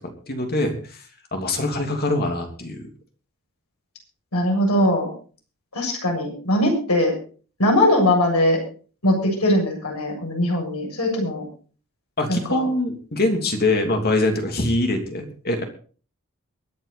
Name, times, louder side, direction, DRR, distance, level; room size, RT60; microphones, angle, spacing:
voice 1, 0.3-1.1 1.3-2.9 12.2-15.6, left 2 dB, 45° left, 4 dB, 3.0 m, -23 dB
voice 2, 4.3-5.1 5.7-7.1 7.6-8.6 9.0-11.4 12.3-12.7, left 1 dB, 85° left, 1 dB, 7.2 m, -20 dB
23.5 x 8.9 x 4.2 m, 0.40 s
head